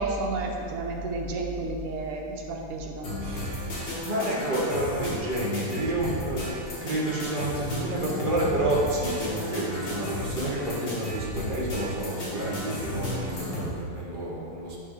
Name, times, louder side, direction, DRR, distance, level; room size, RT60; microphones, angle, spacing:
voice 1, 0.0-3.2, right 2 dB, 85° right, 1 dB, 1.8 m, -31 dB
sound 1, 3.0-13.7, left 1 dB, 75° left, 3.0 m, -34 dB
voice 2, 3.2-14.8, right 1 dB, 35° right, -5 dB, 0.9 m, -30 dB
10.0 x 5.7 x 3.3 m, 2.3 s
omnidirectional pair, 2.4 m